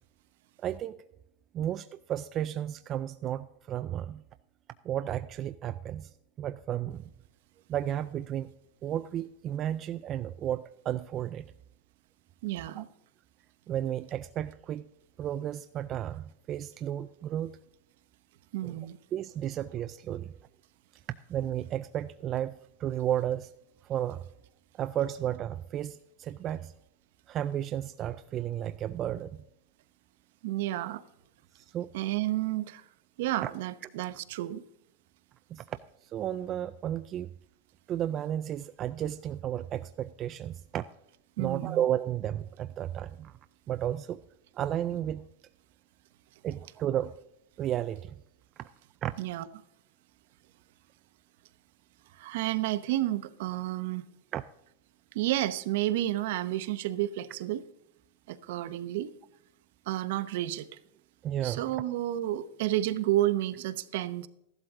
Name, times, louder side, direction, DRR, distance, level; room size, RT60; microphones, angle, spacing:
voice 1, 0.6-1.0 1.5-4.2 4.8-6.1 6.4-7.1 7.7-8.5 8.8-11.5 12.8-12.9 13.7-14.9 15.2-17.5 18.6-18.8 19.1-20.4 21.3-23.5 23.8-24.2 24.8-26.7 27.3-29.4 31.5-31.9 33.4-33.5 35.5-37.3 37.9-40.8 41.4-43.3 43.7-44.2 44.5-45.3 46.4-47.2 47.6-48.2 49.0-49.2 54.3-54.4 61.2-61.8, right 11 dB, 25° right, 10 dB, 0.3 m, -33 dB
voice 2, 12.4-12.9 18.5-19.0 30.4-31.0 31.9-32.8 33.2-34.6 41.4-41.8 49.2-49.4 52.2-54.0 55.1-57.6 58.3-59.1 59.9-60.7 61.4-64.3, right 14 dB, 55° right, 13 dB, 0.8 m, -31 dB
13.5 x 11.5 x 3.7 m, 0.80 s
supercardioid pair, 155°, 0 cm